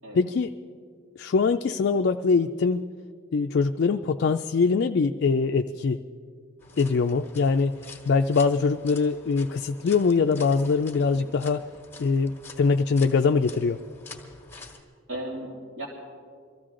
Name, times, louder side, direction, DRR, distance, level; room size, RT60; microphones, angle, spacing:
voice 1, 0.1-0.5 1.2-2.9 3.3-6.0 6.8-7.7 8.1-11.6 12.0-13.8, left 4 dB, 50° left, 6 dB, 0.3 m, -23 dB
sound 1, 6.6-14.8, left 4 dB, 10° left, 1.4 m, -47 dB
voice 2, 15.1-15.9, right 1 dB, 70° right, -5 dB, 3.1 m, -36 dB
24.0 x 14.5 x 3.8 m, 2.2 s
head